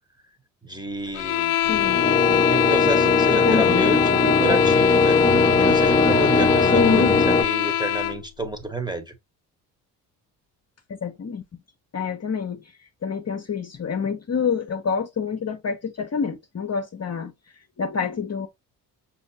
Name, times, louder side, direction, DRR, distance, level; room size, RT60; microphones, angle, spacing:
voice 1, 0.6-1.6 2.5-5.2 5.6-9.1, right 2 dB, 10° right, 1.3 m, -30 dB
sound 1, 1.1-8.2, left 12 dB, 45° left, 0.5 m, -23 dB
voice 2, 1.7-2.0 3.3-4.0 6.7-7.2 10.9-11.4 11.9-12.6 13.0-17.3 17.8-18.5, left 6 dB, 30° left, 1.0 m, -26 dB
sound 2, 1.7-7.4, left 3 dB, 10° left, 1.1 m, -20 dB
6.2 x 2.9 x 2.8 m
hypercardioid pair, 50°, 48 cm